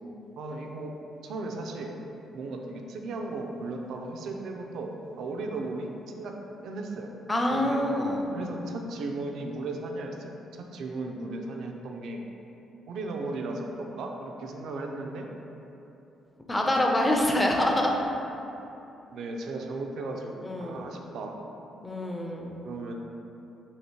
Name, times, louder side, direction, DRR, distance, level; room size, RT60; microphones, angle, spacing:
voice 1, 0.4-0.9 1.2-1.9 2.3-4.9 5.2-6.3 6.6-7.1 7.5-7.9 8.3-12.2 12.9-15.3 16.7-17.0 17.7-17.8 19.1-21.4 22.6-22.9, right 2 dB, 75° right, 2 dB, 0.4 m, -36 dB
voice 2, 7.3-8.4 16.5-17.9 20.4-20.8 21.8-22.7, left 1 dB, 15° left, 0 dB, 0.4 m, -26 dB
3.0 x 2.8 x 4.3 m, 3.0 s
cardioid pair, 90°, 0 cm